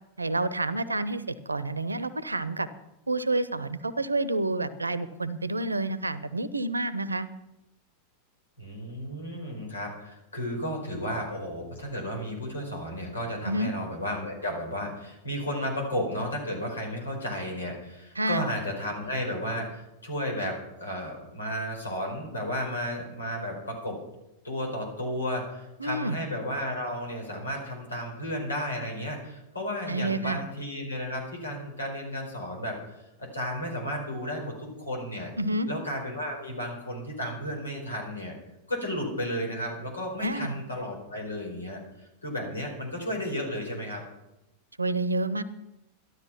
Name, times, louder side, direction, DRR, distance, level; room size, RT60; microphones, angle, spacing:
voice 1, 0.2-2.7 3.1-7.3 13.4-13.7 18.2-18.5 25.8-26.2 29.9-30.4 35.4-35.7 40.2-40.5 44.8-45.4, right 2 dB, 80° right, 17 dB, 0.8 m, -29 dB
voice 2, 8.6-24.0 24.4-32.8 33.2-35.3 35.7-38.3 38.7-44.0, equal, 75° left, 1 dB, 4.8 m, -33 dB
13.0 x 12.5 x 5.9 m, 0.92 s
figure-of-eight pair, 90°, 0 cm